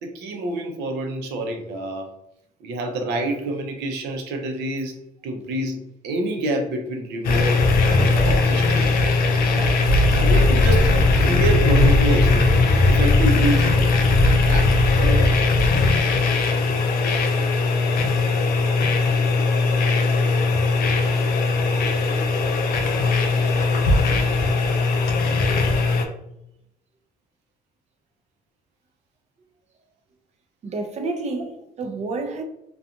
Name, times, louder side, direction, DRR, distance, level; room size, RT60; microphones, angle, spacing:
voice 1, 0.0-2.1 2.6-5.0 5.2-9.1 9.5-9.7 10.1-10.9 11.2-12.6 12.9-14.0 14.5-15.4, right 1 dB, 80° right, 0.7 m, -27 dB
sound 1, 7.2-26.0, left 3 dB, 60° left, 0.5 m, -19 dB
voice 2, 30.6-32.4, right 3 dB, 40° right, 0.5 m, -30 dB
2.5 x 2.3 x 2.7 m
cardioid pair, 110°, 17 cm